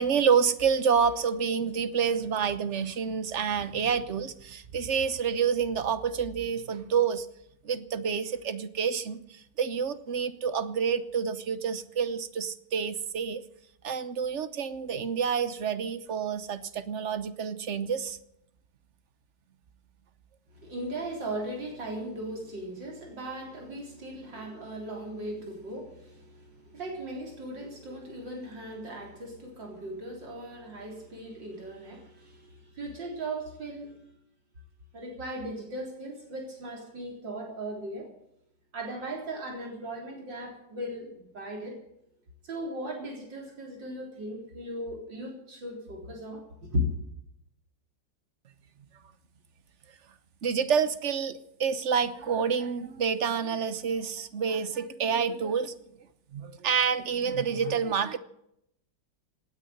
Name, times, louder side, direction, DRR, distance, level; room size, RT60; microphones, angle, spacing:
voice 1, 0.0-7.3 7.6-13.4 13.8-18.2 50.4-55.7 56.3-58.2, right 6 dB, 45° right, 13 dB, 1.1 m, -28 dB
voice 2, 20.5-34.0 34.9-38.1 38.7-41.8 42.4-46.4 46.7-46.9, equal, 80° right, 0 dB, 4.4 m, -37 dB
18.0 x 9.6 x 7.8 m, 0.77 s
omnidirectional pair, 1.9 m